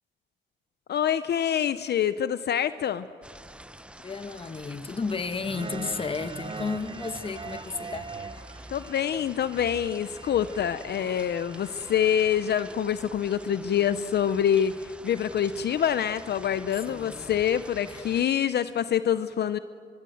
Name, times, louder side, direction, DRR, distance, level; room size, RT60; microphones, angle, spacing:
voice 1, 0.9-3.1 8.7-19.6, left 9 dB, 60° left, 0.6 m, -26 dB
sound 1, 3.2-18.3, right 1 dB, 5° right, 0.7 m, -47 dB
voice 2, 4.0-8.1 16.9-17.4 17.9-18.0, left 4 dB, 30° left, 1.1 m, -33 dB
sound 2, 5.4-12.7, right 4 dB, 25° right, 1.0 m, -42 dB
24.0 x 24.0 x 7.8 m
cardioid pair, 125°, 20 cm